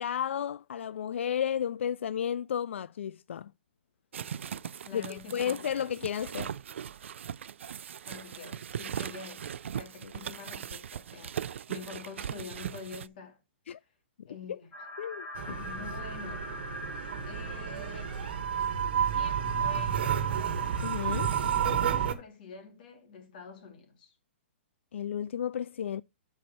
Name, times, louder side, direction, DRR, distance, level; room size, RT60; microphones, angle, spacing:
voice 1, 0.0-3.5 4.9-6.5 13.7-13.8 14.5-14.6 15.0-15.6 20.8-21.4 24.9-26.0, left 9 dB, 80° left, 0.3 m, -33 dB
sound 1, 4.1-13.1, right 8 dB, 85° right, 0.4 m, -39 dB
voice 2, 4.8-5.6 8.1-9.5 9.7-13.4 14.3-14.7 15.6-16.5 17.2-18.2 19.1-20.0 21.3-24.1, left 5 dB, 45° left, 2.6 m, -46 dB
sound 2, 14.7-21.1, left 1 dB, 15° left, 2.6 m, -44 dB
sound 3, 15.3-22.1, right 8 dB, 55° right, 1.5 m, -30 dB
11.0 x 4.7 x 4.2 m
hypercardioid pair, 175°, 6 cm